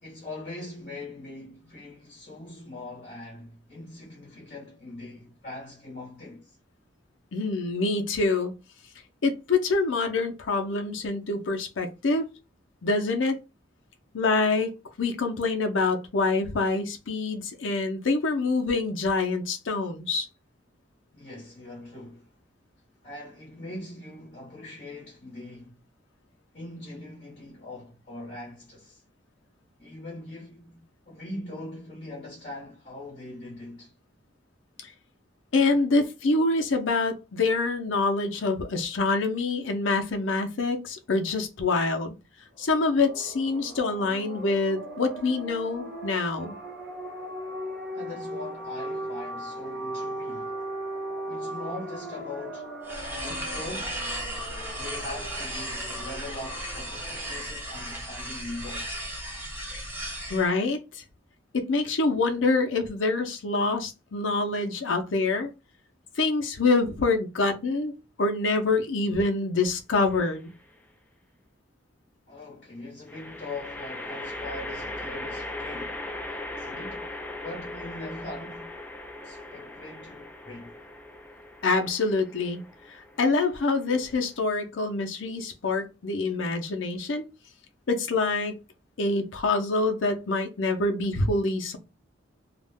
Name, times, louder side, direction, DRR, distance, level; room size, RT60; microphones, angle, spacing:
voice 1, 0.0-6.6 21.1-22.3 23.0-25.8 26.5-29.0 29.8-33.9 47.9-50.7 51.3-52.7 53.2-54.0 54.8-58.9 72.3-76.0 76.3-77.1 77.4-78.7 79.2-80.8, left 2 dB, 45° left, 0.9 m, -41 dB
voice 2, 7.3-8.5 9.2-12.3 12.8-13.3 14.1-14.7 15.0-20.3 35.5-42.2 42.6-46.6 60.3-61.0 61.5-65.5 66.2-67.9 68.2-70.5 81.6-82.6 82.9-87.3 87.9-88.6 89.0-91.8, left 3 dB, 80° left, 0.6 m, -26 dB
sound 1, 42.6-57.4, right 1 dB, 55° right, 0.8 m, -38 dB
sound 2, 52.8-60.5, right 1 dB, 10° right, 0.8 m, -35 dB
sound 3, 70.0-70.5 73.1-84.4, left 1 dB, 10° left, 0.3 m, -39 dB
2.4 x 2.1 x 3.4 m
head